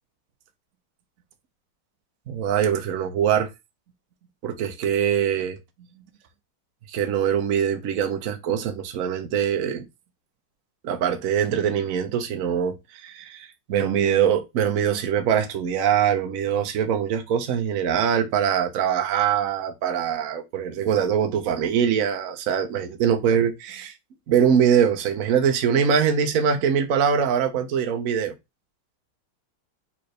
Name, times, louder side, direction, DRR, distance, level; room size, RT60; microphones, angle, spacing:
voice 1, 2.3-3.5 4.4-5.6 6.9-9.8 10.8-23.9 24.3-28.3, right 8 dB, 75° right, 0.7 m, -23 dB
4.3 x 3.8 x 3.2 m
omnidirectional pair, 2.3 m